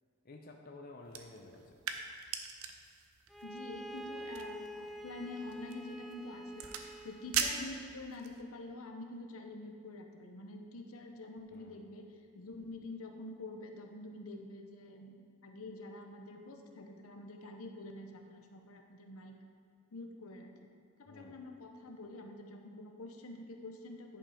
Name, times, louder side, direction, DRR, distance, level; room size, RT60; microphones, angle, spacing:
voice 1, 0.2-1.8 11.5-11.9 21.1-21.4, left 2 dB, 45° left, 1 dB, 0.6 m, -52 dB
sound 1, 1.0-8.4, right 7 dB, 85° right, 0.7 m, -42 dB
Bowed string instrument, 3.3-7.5, equal, ahead, 0.3 m, -47 dB
voice 2, 3.4-12.1 12.3-19.4 19.9-20.5 21.0-24.2, left 2 dB, 80° left, 4 dB, 0.9 m, -47 dB
10.5 x 5.4 x 4.9 m, 2.4 s
head